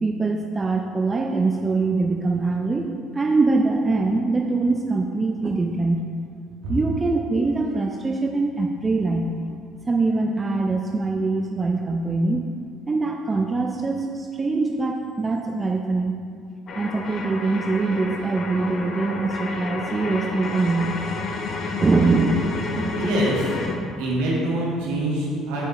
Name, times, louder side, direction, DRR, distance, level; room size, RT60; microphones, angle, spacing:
voice 1, 0.0-6.0 6.7-9.3 9.9-12.5 12.9-16.1 16.8-20.9 21.8-22.5 22.8-23.0, right 3 dB, 25° right, 1 dB, 0.6 m, -23 dB
sound 1, 16.7-23.8, left 4 dB, 50° left, 0.7 m, -30 dB
voice 2, 22.9-23.5 24.0-25.7, right 1 dB, 75° right, -5 dB, 1.8 m, -25 dB
7.5 x 6.5 x 3.2 m, 2.3 s
hypercardioid pair, 60°, 0 cm